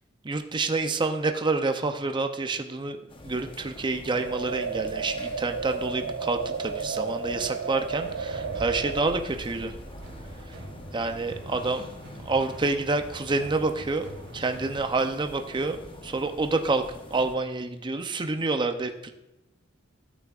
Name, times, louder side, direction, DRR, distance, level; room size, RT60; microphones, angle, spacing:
voice 1, 0.2-3.0 3.2-9.7 10.9-11.8 12.2-14.1 14.3-15.8 16.0-19.1, right 3 dB, 25° right, 6 dB, 0.5 m, -28 dB
sound 1, 3.1-17.4, left 1 dB, 25° left, 0.9 m, -46 dB
sound 2, 4.1-9.2, right 5 dB, 85° right, 0.4 m, -33 dB
sound 3, 7.8-14.8, right 1 dB, 55° right, 1.3 m, -43 dB
12.5 x 8.4 x 2.4 m, 0.95 s
head